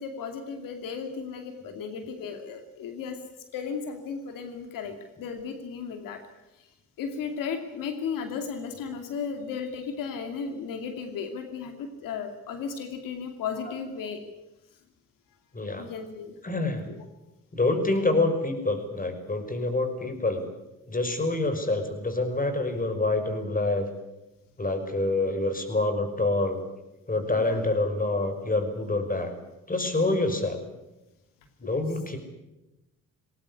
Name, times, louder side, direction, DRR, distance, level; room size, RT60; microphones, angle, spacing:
voice 1, 0.0-3.2 3.5-6.2 6.5-6.7 7.0-14.2 15.7-16.4 16.9-17.1 27.3-27.6 30.0-30.2 31.6-31.8, left 6 dB, 85° left, 6 dB, 2.7 m, -35 dB
voice 2, 15.5-15.9 16.4-16.9 17.5-20.5 20.9-23.9 24.6-26.6 27.1-29.3 29.7-30.6 31.6-32.2, left 2 dB, 25° left, 8 dB, 5.8 m, -26 dB
20.0 x 18.5 x 9.8 m, 0.95 s
supercardioid pair, 70°, 33 cm